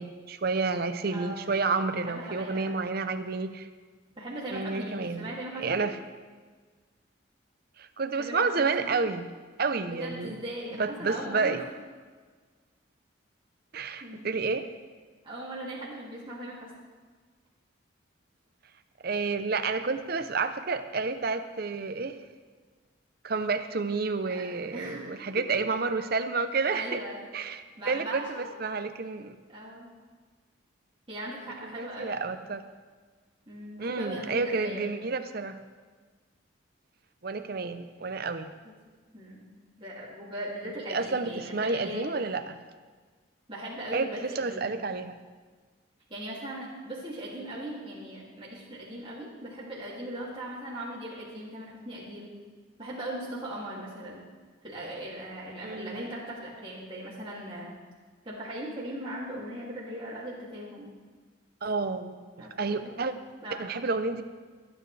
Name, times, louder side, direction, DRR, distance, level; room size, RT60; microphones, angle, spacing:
voice 1, 0.0-3.7 4.5-5.3 5.6-6.0 7.8-9.3 9.6-10.4 10.8-11.6 13.7-14.7 19.0-22.2 23.2-27.0 27.3-29.3 31.6-32.6 33.8-35.6 37.2-38.5 40.9-42.6 43.9-44.1 44.4-45.2 55.6-56.1 61.6-63.1 63.6-64.2, right 4 dB, 50° right, 9 dB, 0.7 m, -30 dB
voice 2, 1.1-1.5 1.9-2.7 4.2-5.8 8.2-8.5 8.8-9.1 9.9-11.6 14.0-14.3 15.2-16.7 24.3-24.4 24.7-25.4 26.7-27.2 27.8-28.5 29.5-29.9 31.1-32.1 33.5-35.1 39.1-39.5 39.8-42.4 43.5-44.7 46.1-52.3 52.8-54.3 54.6-57.8 58.2-60.9 62.4-63.0 63.4-63.6, right 1 dB, 25° right, -7 dB, 2.6 m, -39 dB
25.5 x 9.1 x 3.3 m, 1.5 s
head